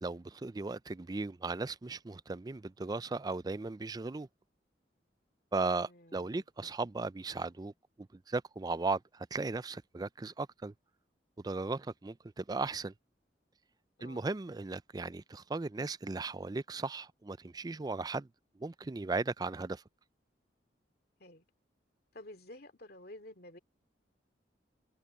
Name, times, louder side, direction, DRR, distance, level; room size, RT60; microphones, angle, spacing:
voice 1, 0.0-4.3 5.5-7.7 8.3-10.7 11.4-12.9 14.0-18.3 18.6-19.8, right 3 dB, 20° right, 0.4 m, -36 dB
voice 2, 5.9-6.4 14.0-14.2 21.2-21.4 22.1-23.6, left 1 dB, 55° left, 2.6 m, -51 dB
open air
head